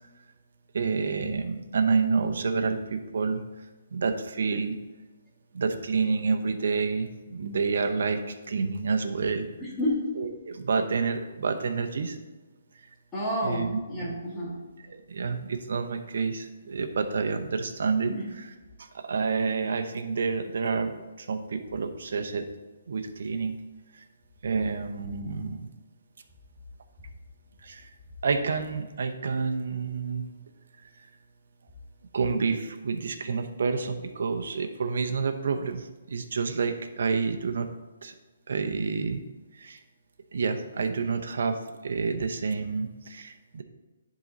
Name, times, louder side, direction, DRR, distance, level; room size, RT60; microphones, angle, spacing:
voice 1, 0.7-3.4 3.9-4.8 5.5-9.5 10.2-12.2 13.4-13.7 14.9-18.1 18.8-22.5 22.9-23.6 23.9-24.0 24.4-25.7 27.6-27.9 28.2-30.3 32.1-37.7 38.0-38.1 38.5-39.2 39.6-39.8 40.3-43.6, right 4 dB, 70° right, 6 dB, 0.8 m, -29 dB
voice 2, 9.6-10.1 13.1-14.6 18.1-18.3, equal, 15° left, -7 dB, 1.9 m, -30 dB
10.5 x 3.8 x 4.0 m, 1.2 s
hypercardioid pair, 155°, 0 cm